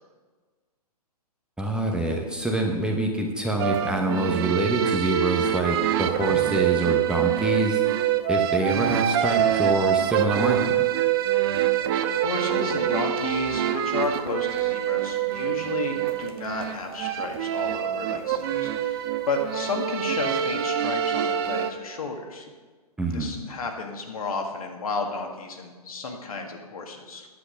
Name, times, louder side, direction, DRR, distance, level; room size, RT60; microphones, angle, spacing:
voice 1, 1.6-7.8 8.3-10.9 23.0-23.4, right 2 dB, 5° right, 1 dB, 0.9 m, -26 dB
sound 1, 3.6-21.7, right 10 dB, 40° right, 0.7 m, -25 dB
voice 2, 12.1-22.5 23.1-27.3, left 3 dB, 65° left, 3 dB, 1.7 m, -32 dB
9.9 x 8.1 x 6.3 m, 1.4 s
figure-of-eight pair, 120°, 20 cm